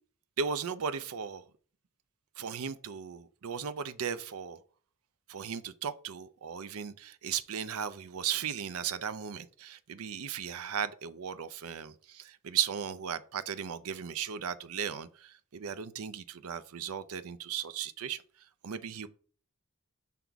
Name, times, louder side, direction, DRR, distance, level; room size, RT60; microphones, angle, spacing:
voice 1, 0.4-1.4 2.4-4.6 5.3-18.2 18.6-19.1, right 7 dB, 70° right, 0.5 m, -36 dB
5.8 x 4.6 x 3.9 m
head